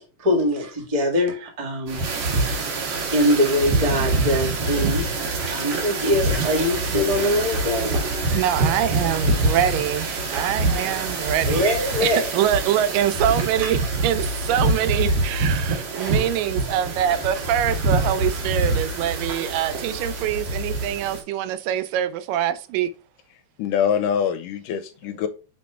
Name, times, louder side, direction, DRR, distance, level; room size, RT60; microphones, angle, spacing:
voice 1, 0.2-2.0 3.1-8.0 11.4-12.3 13.6-13.7, left 1 dB, 20° right, 1.0 m, -23 dB
sound 1, 1.9-21.2, right 2 dB, 60° right, 2.7 m, -25 dB
voice 2, 8.3-11.7 12.0-13.8 14.0-22.9, right 11 dB, 85° right, 2.3 m, -24 dB
voice 3, 23.6-25.3, left 8 dB, 85° left, 2.2 m, -24 dB
5.7 x 5.2 x 3.3 m
omnidirectional pair, 3.8 m